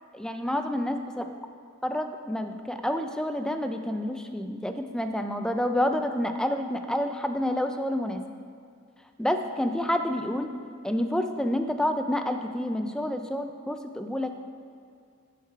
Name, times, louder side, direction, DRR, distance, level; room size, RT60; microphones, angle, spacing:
voice 1, 0.1-1.2 1.8-8.2 9.2-10.5 10.8-14.3, left 1 dB, 5° left, 6 dB, 0.3 m, -28 dB
10.5 x 4.7 x 4.7 m, 2.2 s
head